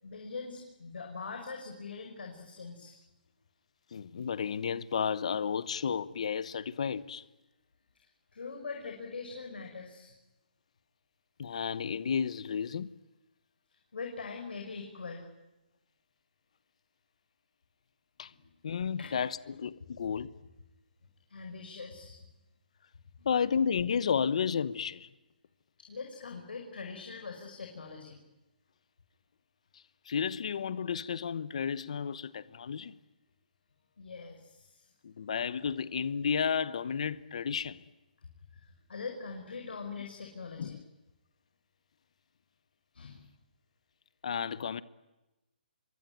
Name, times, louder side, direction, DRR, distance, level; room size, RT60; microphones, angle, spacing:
voice 1, 0.0-3.0 8.3-10.2 13.9-15.3 19.0-19.2 21.3-22.2 23.2-23.3 25.8-28.2 34.0-34.9 38.5-40.8 42.9-43.3, left 4 dB, 90° left, 5.6 m, -42 dB
voice 2, 3.9-7.2 11.4-12.9 18.2-18.3 18.6-20.3 23.2-25.1 30.1-32.9 35.0-37.8 40.6-40.8 44.2-44.8, left 7 dB, 40° left, 1.0 m, -32 dB
27.0 x 23.0 x 9.3 m
hypercardioid pair, 180°, 5 cm